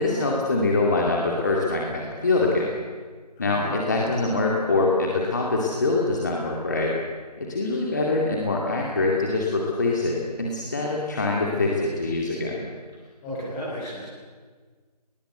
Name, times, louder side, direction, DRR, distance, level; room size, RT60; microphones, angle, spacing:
voice 1, 0.0-2.7 3.4-6.9 7.4-12.6, left 3 dB, 25° left, -2 dB, 2.4 m, -24 dB
voice 2, 3.4-4.1 11.5-11.6 13.2-14.1, equal, 10° left, -10 dB, 7.9 m, -35 dB
27.0 x 20.5 x 8.0 m, 1.5 s
figure-of-eight pair, 170°, 21 cm